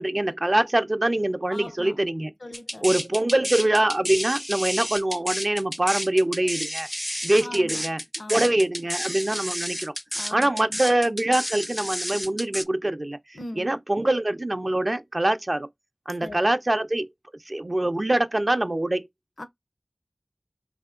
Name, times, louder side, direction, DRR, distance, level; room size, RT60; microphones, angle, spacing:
voice 1, 0.0-2.3 2.8-6.9 7.2-8.0 8.3-9.9 10.3-13.2 13.6-15.7 16.1-17.1 17.5-19.0, right 1 dB, 45° right, 0.5 m, -24 dB
voice 2, 1.5-2.0 2.4-3.0 7.4-7.8 8.2-8.5 10.1-10.8 13.3-13.8 16.2-16.5 19.4-19.5, left 1 dB, 75° left, 0.5 m, -40 dB
sound 1, 2.5-12.6, equal, 5° left, 0.4 m, -31 dB
3.4 x 2.8 x 2.4 m
wide cardioid pair, 40°, 0 cm